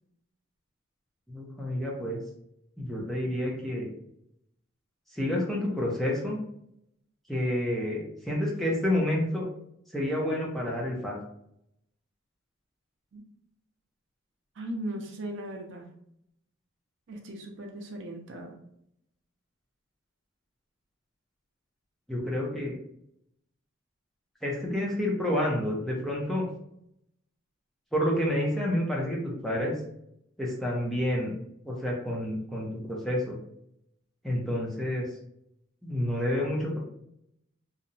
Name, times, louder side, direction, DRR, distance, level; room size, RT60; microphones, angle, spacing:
voice 1, 1.3-2.2 2.8-3.9 5.1-6.4 7.3-9.5 9.9-11.2 22.1-22.8 24.4-26.5 27.9-29.7 30.4-31.3 31.6-33.4 34.2-35.1 35.8-36.8, left 1 dB, ahead, -4 dB, 0.5 m, -29 dB
voice 2, 14.6-15.9 17.1-18.5, right 1 dB, 65° right, 3 dB, 0.4 m, -38 dB
2.7 x 2.1 x 2.5 m, 0.75 s
head